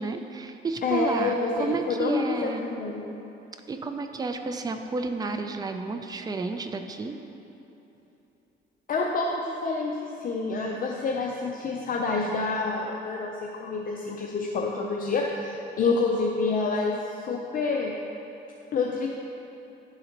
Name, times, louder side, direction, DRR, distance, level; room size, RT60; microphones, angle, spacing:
voice 1, 0.0-2.7 3.7-7.2, right 3 dB, 20° right, 6 dB, 0.4 m, -31 dB
voice 2, 0.8-3.1 8.9-17.9 18.7-19.1, left 4 dB, 45° left, -1 dB, 0.5 m, -28 dB
11.0 x 4.0 x 2.9 m, 3.0 s
cardioid pair, 90°, 20 cm